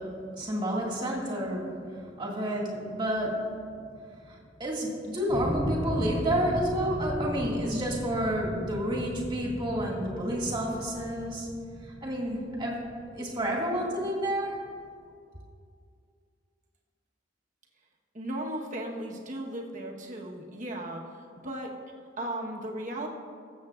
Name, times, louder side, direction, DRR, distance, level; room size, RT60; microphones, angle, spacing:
voice 1, 0.0-3.6 4.2-11.5 11.8-12.8 13.2-14.6, equal, 25° right, -4 dB, 2.0 m, -30 dB
sound 1, 5.3-14.1, equal, 15° left, 1.7 m, -36 dB
voice 2, 18.1-21.7 22.2-23.1, right 1 dB, 45° right, 0 dB, 1.2 m, -36 dB
22.0 x 7.5 x 2.5 m, 2.3 s
head